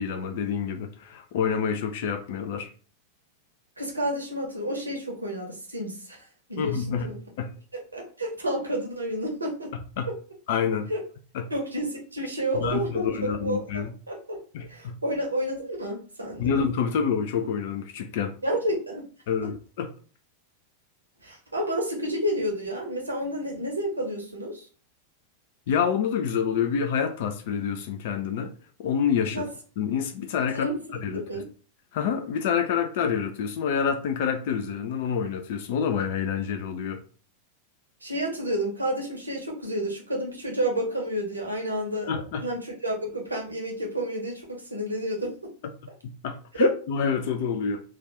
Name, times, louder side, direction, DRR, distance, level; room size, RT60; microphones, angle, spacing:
voice 1, 0.0-2.7 6.6-7.5 10.0-10.1 10.5-10.9 11.3-11.5 12.5-13.9 14.5-15.0 16.4-18.3 19.3-19.9 25.7-28.5 28.8-29.5 29.8-30.7 31.0-31.4 31.9-37.0 42.1-42.4 46.0-47.8, left 7 dB, 50° left, 6 dB, 0.4 m, -27 dB
voice 2, 3.8-6.2 6.5-7.2 7.9-9.7 10.9-11.0 11.5-14.4 14.7-16.5 18.4-19.0 21.2-24.7 29.3-29.5 30.5-30.7 31.2-31.5 38.0-42.1 42.4-45.5 46.6-46.7, right 1 dB, 80° right, 0 dB, 0.9 m, -30 dB
3.2 x 2.4 x 3.1 m, 0.39 s
figure-of-eight pair, 90°, 0 cm